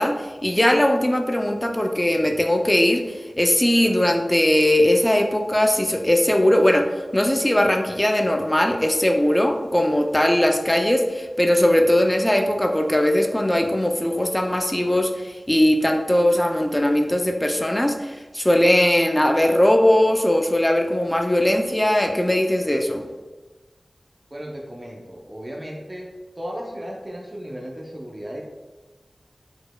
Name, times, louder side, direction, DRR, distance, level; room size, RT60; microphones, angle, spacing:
voice 1, 0.0-6.9 7.1-23.0, left 1 dB, 15° left, 3 dB, 0.4 m, -20 dB
voice 2, 24.3-26.1 26.4-28.4, equal, 30° right, -2 dB, 0.6 m, -35 dB
4.6 x 4.3 x 2.2 m, 1.2 s
wide cardioid pair, 45°, 0 cm